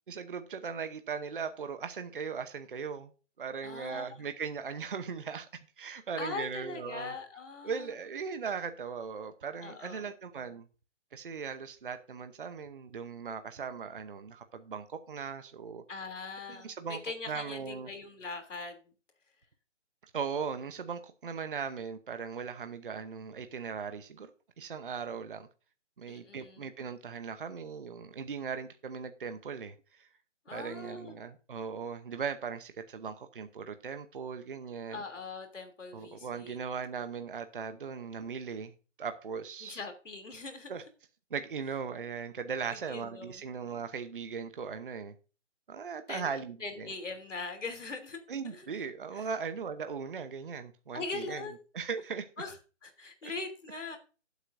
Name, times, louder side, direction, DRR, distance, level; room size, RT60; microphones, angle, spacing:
voice 1, 0.1-3.1 3.4-7.1 7.6-10.6 11.1-15.8 16.5-17.0 17.2-17.9 20.1-24.3 24.6-25.5 26.0-30.1 30.5-35.0 35.9-38.7 39.0-39.8 40.7-40.8 41.3-45.2 45.7-46.9 48.3-51.4 51.7-52.3 53.2-53.3, right 6 dB, 45° right, 0.8 m, -38 dB
voice 2, 3.6-4.1 6.2-7.9 9.6-10.1 15.9-18.9 26.1-26.7 30.5-31.2 34.9-36.6 39.6-40.7 42.9-43.3 46.1-46.3 46.6-48.7 49.1-49.3 50.9-51.6 52.4-52.5 52.8-54.0, left 3 dB, 80° left, 2.9 m, -41 dB
15.0 x 8.2 x 2.6 m
hypercardioid pair, 170°, 36 cm